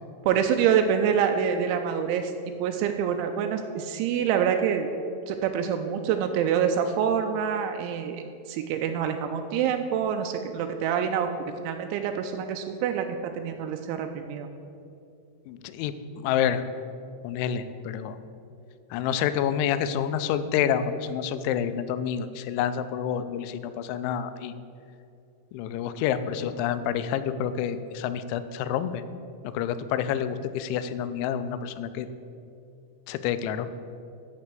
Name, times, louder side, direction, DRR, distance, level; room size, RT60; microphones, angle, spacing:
voice 1, 0.2-2.3 2.6-4.9 5.3-11.3 11.6-14.5, right 8 dB, 85° right, 5 dB, 2.9 m, -26 dB
voice 2, 15.5-15.9 16.2-16.6 17.2-18.2 18.9-24.5 25.5-29.0 29.5-32.1 33.1-33.7, left 9 dB, 85° left, 11 dB, 2.9 m, -28 dB
11.5 x 4.4 x 7.5 m, 2.6 s
omnidirectional pair, 5.3 m